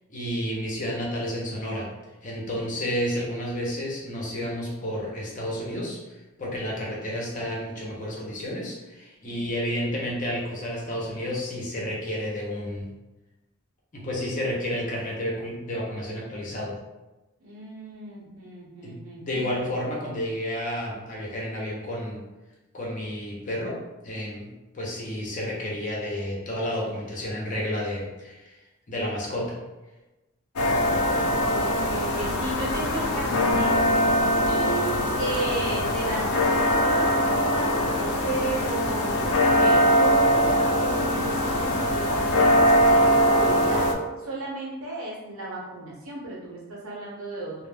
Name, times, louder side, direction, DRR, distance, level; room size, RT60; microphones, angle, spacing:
voice 1, 0.1-1.9 2.2-12.9 13.9-16.8 18.8-22.2 22.7-24.5 24.7-28.6 28.9-29.6, equal, 35° left, -4 dB, 0.6 m, -31 dB
voice 2, 17.4-19.7 31.2-33.8 34.1-37.7 38.2-43.9 44.2-47.7, right 2 dB, 80° right, -4 dB, 0.9 m, -34 dB
sound 1, 30.6-43.9, equal, 80° left, 0.4 m, -22 dB
2.3 x 2.0 x 3.3 m, 1.1 s
head